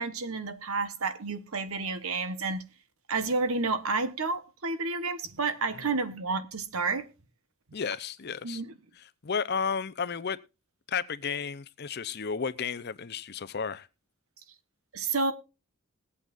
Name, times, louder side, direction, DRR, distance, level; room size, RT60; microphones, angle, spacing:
voice 1, 0.0-2.6 3.1-7.1 8.4-8.7 14.9-15.3, right 3 dB, 70° right, 1.3 m, -30 dB
voice 2, 7.7-8.6 9.2-10.4 10.9-13.9, left 6 dB, 45° left, 0.6 m, -32 dB
20.5 x 8.6 x 2.5 m
head